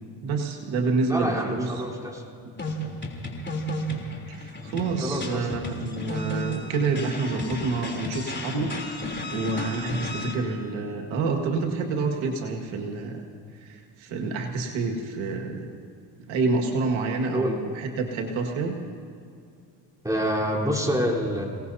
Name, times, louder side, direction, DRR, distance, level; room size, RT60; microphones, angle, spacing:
voice 1, 0.2-1.7 4.3-13.2 13.5-15.8 16.3-18.8, right 3 dB, 75° right, 1 dB, 2.0 m, -28 dB
voice 2, 1.1-2.2 5.0-5.6 17.3-17.6 20.0-21.5, equal, 5° right, -2 dB, 3.8 m, -27 dB
sound 1, 2.6-10.3, left 1 dB, 20° left, 3.4 m, -33 dB
29.0 x 18.0 x 2.8 m, 2.4 s
supercardioid pair, 80°, 48 cm